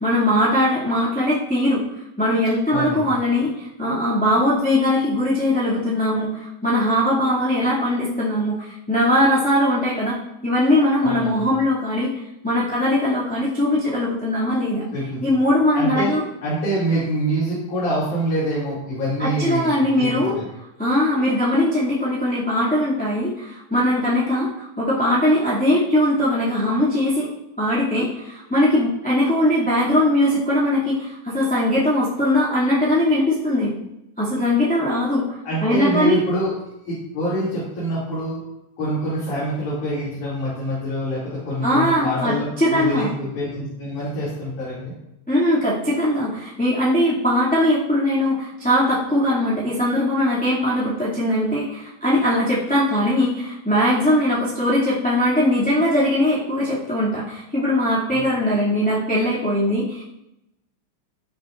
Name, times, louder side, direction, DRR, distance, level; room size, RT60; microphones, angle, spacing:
voice 1, 0.0-1.8 2.2-14.8 15.2-16.2 19.2-20.4 20.8-27.3 27.6-33.7 34.2-35.4 35.6-36.2 41.6-43.1 45.3-60.0, left 1 dB, 5° left, -9 dB, 2.0 m, -20 dB
voice 2, 2.7-3.0 11.0-11.3 14.9-15.2 15.7-16.1 16.4-20.4 35.4-36.5 36.9-38.4 38.8-42.4 42.7-43.1 43.3-44.9 58.1-58.2, equal, 80° left, -9 dB, 4.3 m, -25 dB
17.0 x 7.4 x 2.6 m, 0.87 s
omnidirectional pair, 3.4 m